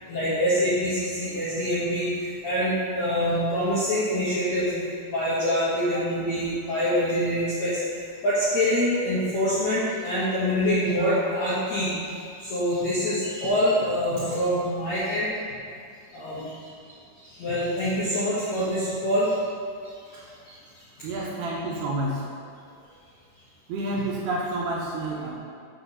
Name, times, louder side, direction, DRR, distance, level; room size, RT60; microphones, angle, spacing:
voice 1, 0.0-4.7 5.1-15.4 16.1-16.7 17.2-19.4 19.8-20.2 20.4-20.6, equal, 65° left, -11 dB, 1.8 m, -25 dB
voice 2, 21.0-22.2 23.7-25.4, right 2 dB, 75° right, -4 dB, 2.6 m, -29 dB
6.9 x 4.5 x 6.6 m, 2.3 s
omnidirectional pair, 5.3 m